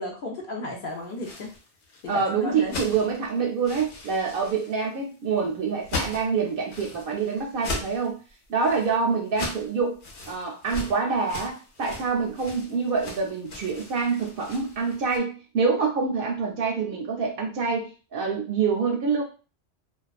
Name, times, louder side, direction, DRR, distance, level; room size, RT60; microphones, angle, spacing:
voice 1, 0.0-1.5 2.0-2.8, left 2 dB, 60° left, 0 dB, 0.7 m, -34 dB
sound 1, 1.0-15.2, left 3 dB, 80° left, 1.0 m, -39 dB
voice 2, 2.1-8.2 8.5-10.0 10.3-19.2, right 5 dB, 65° right, 1 dB, 0.7 m, -26 dB
2.3 x 2.3 x 2.3 m, 0.35 s
omnidirectional pair, 1.1 m